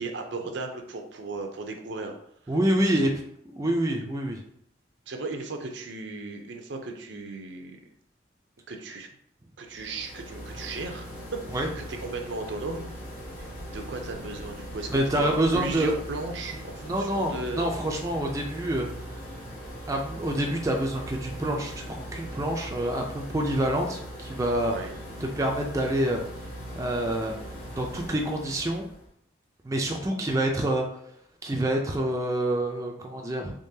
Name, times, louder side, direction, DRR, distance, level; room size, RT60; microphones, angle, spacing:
voice 1, 0.0-2.1 2.5-2.6 3.1-3.2 5.1-7.8 8.7-9.1 9.6-12.8 13.4-17.7 24.6-24.9, right 3 dB, 70° right, 4 dB, 0.5 m, -36 dB
voice 2, 2.5-3.1 3.5-4.4 11.5-11.7 14.9-15.9 16.8-18.9 19.9-24.7 25.2-26.2 26.8-27.5 27.8-28.8 29.6-30.8 31.4-33.5, right 1 dB, 15° right, 1 dB, 0.4 m, -27 dB
sound 1, 9.7-29.1, equal, 50° left, 1.0 m, -40 dB
3.7 x 3.3 x 2.7 m, 0.69 s
head